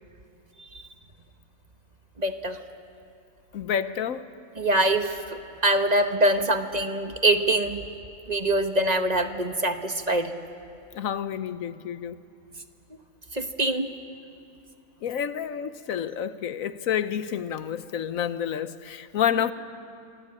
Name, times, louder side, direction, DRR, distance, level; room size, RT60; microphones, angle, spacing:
voice 1, 2.2-2.6 4.6-7.8 8.3-10.3 13.3-13.9, right 1 dB, 35° right, 1.1 m, -24 dB
voice 2, 3.5-4.3 10.9-12.2 15.0-19.5, left 9 dB, 80° left, 1.3 m, -29 dB
27.0 x 22.5 x 8.6 m
omnidirectional pair, 1.4 m